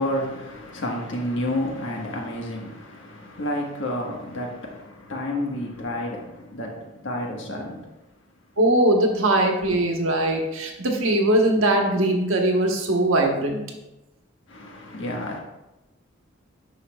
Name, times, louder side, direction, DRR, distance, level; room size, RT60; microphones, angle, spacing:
voice 1, 0.0-7.9 14.5-15.4, left 1 dB, 70° left, 1.4 m, -30 dB
voice 2, 8.6-13.6, right 1 dB, 90° right, 1.2 m, -21 dB
9.4 x 5.9 x 2.3 m
head